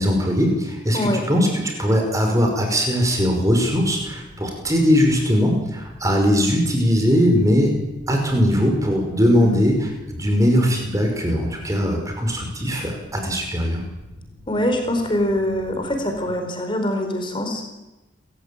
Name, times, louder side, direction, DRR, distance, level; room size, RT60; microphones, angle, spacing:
voice 1, 0.0-7.7 8.1-13.8, equal, 15° right, 2 dB, 5.7 m, -20 dB
Mechanical fan, 3.5-16.3, left 1 dB, 45° right, 6.5 m, -45 dB
voice 2, 9.3-9.7 14.5-17.7, left 1 dB, 25° left, 4 dB, 5.0 m, -24 dB
30.0 x 16.0 x 9.2 m, 1.0 s
head